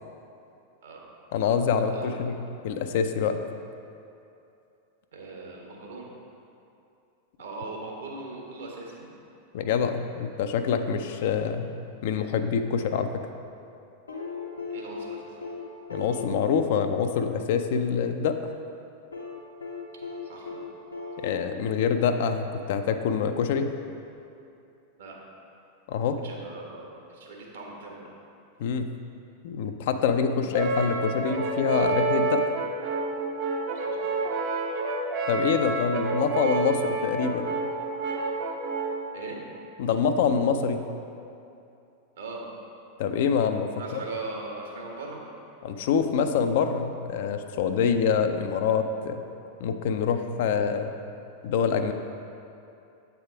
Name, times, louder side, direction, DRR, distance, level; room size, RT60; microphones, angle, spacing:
voice 1, 1.3-2.4 2.6-3.4 9.5-11.7 12.0-13.3 15.9-18.3 21.2-23.7 25.9-26.2 28.6-28.9 29.4-32.4 35.3-37.5 39.8-40.9 43.0-44.0 45.6-49.2 49.6-51.0 51.4-51.9, left 6 dB, 55° left, 7 dB, 0.3 m, -25 dB
voice 2, 5.1-6.1 7.4-9.0 14.7-15.4 20.2-20.6 21.2-21.3 25.0-25.2 26.2-28.1 33.8-34.0 39.1-39.4 42.2-42.5 43.7-45.2, right 3 dB, 65° right, -1 dB, 1.2 m, -39 dB
sound 1, 14.1-18.2 19.1-22.7 24.1-24.2, left 4 dB, 80° left, 0.8 m, -39 dB
Brass instrument, 30.5-39.1, right 3 dB, 45° right, 0.7 m, -29 dB
7.9 x 3.5 x 4.9 m, 2.7 s
figure-of-eight pair, 90°, 0 cm